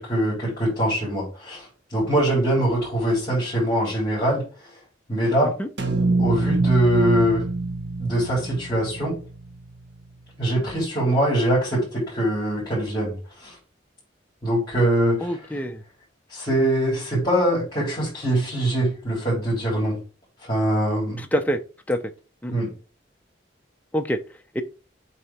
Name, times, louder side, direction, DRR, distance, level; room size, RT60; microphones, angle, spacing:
voice 1, 0.0-4.5 5.1-5.5 6.2-7.5 8.0-9.2 10.4-13.6 14.4-15.4 16.3-20.0 20.4-21.2 22.5-22.7, right 1 dB, 25° left, 3.7 m, -23 dB
sound 1, 5.8-10.0, right 3 dB, 70° right, 1.1 m, -26 dB
voice 2, 15.2-15.8 21.2-21.6 21.9-22.0 22.4-22.5 23.9-24.2 24.5-24.6, equal, 10° left, 0.6 m, -25 dB
7.9 x 2.9 x 4.3 m
head